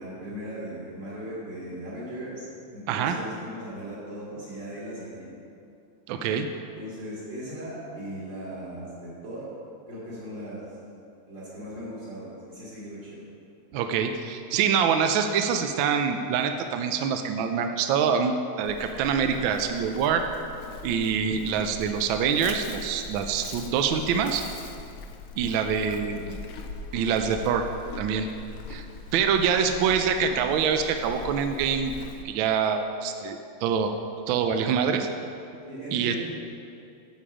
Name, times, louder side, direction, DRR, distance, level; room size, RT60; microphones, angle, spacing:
voice 1, 0.0-2.5 2.7-5.4 6.8-9.5 9.9-10.6 11.3-13.3 35.7-36.2, equal, 55° right, -11 dB, 3.5 m, -38 dB
voice 2, 6.1-6.5 13.7-20.2 20.8-24.4 25.4-26.4 26.9-27.7 28.0-28.3 28.7-28.8 29.1-31.9 32.2-33.9 34.3-35.1 35.9-36.2, right 7 dB, 75° right, 6 dB, 1.3 m, -25 dB
Livestock farm animals working animals, 18.6-32.3, left 4 dB, 85° left, 1.6 m, -41 dB
10.0 x 7.3 x 4.9 m, 2.6 s
omnidirectional pair, 2.3 m